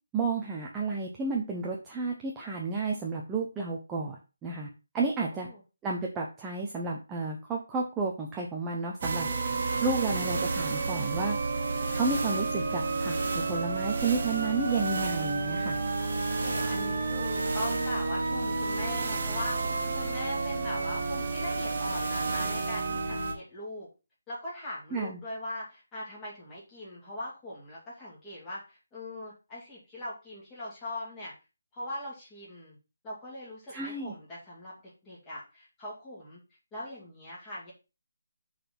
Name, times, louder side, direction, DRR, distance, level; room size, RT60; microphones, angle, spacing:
voice 1, 0.1-4.2 4.4-4.7 4.9-5.5 5.8-9.3 9.8-11.4 11.9-15.8 24.9-25.2 33.7-34.1, right 4 dB, 10° right, -2 dB, 0.7 m, -31 dB
sound 1, 9.0-23.3, right 3 dB, 40° right, 1.5 m, -30 dB
voice 2, 9.6-10.1 16.4-19.6 20.0-23.9 24.3-31.3 31.7-32.8 33.0-34.7 35.0-36.4 36.7-37.7, left 1 dB, 10° left, -6 dB, 2.5 m, -40 dB
6.6 x 4.2 x 5.9 m, 0.30 s
hypercardioid pair, 175°, 0 cm